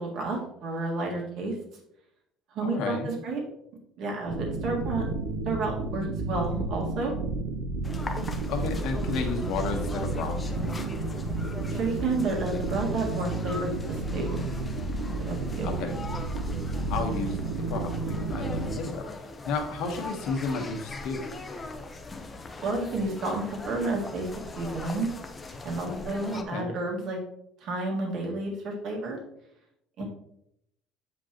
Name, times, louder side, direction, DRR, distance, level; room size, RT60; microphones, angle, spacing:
voice 1, 0.0-1.5 2.5-3.4 4.0-5.0 5.5-7.1 11.7-14.4 15.2-15.7 22.6-24.3 24.6-25.1 25.6-27.2 27.6-29.2 30.0-30.1, right 2 dB, 55° right, 0 dB, 1.9 m, -31 dB
voice 2, 2.6-3.1 8.5-10.4 15.6-16.0 16.9-21.2 25.8-26.7 30.0-30.1, left 4 dB, 65° left, 4 dB, 1.2 m, -33 dB
sound 1, 4.3-18.8, right 3 dB, 90° right, 0.8 m, -31 dB
sound 2, 7.8-26.4, left 3 dB, 20° left, 0.6 m, -41 dB
7.8 x 5.1 x 3.0 m, 0.78 s
cardioid pair, 145°, 0 cm